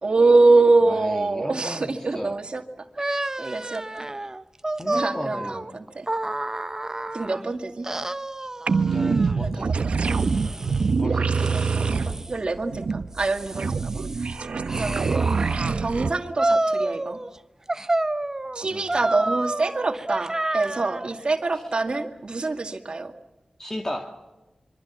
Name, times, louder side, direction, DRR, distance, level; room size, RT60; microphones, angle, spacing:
voice 1, 0.0-4.1 4.9-6.1 7.1-7.9 9.4-10.2 11.0-14.4 14.7-15.3 15.8-17.2 18.5-23.1, right 3 dB, 55° right, 6 dB, 2.1 m, -25 dB
voice 2, 0.8-2.4 4.8-5.6 8.8-9.9 11.0-11.9 13.6-13.9 14.6-14.8 18.6-18.9 23.6-24.1, left 1 dB, 25° left, 3 dB, 2.1 m, -36 dB
sound 1, 3.0-7.4 7.8-9.4 10.0-10.9 11.3-12.3 12.9-15.8 16.4-17.4 17.7-21.1, right 2 dB, 25° right, 0.9 m, -29 dB
sound 2, 8.7-16.1, right 4 dB, 80° right, 0.9 m, -25 dB
26.5 x 24.0 x 7.3 m, 1.1 s
wide cardioid pair, 65°, 2 cm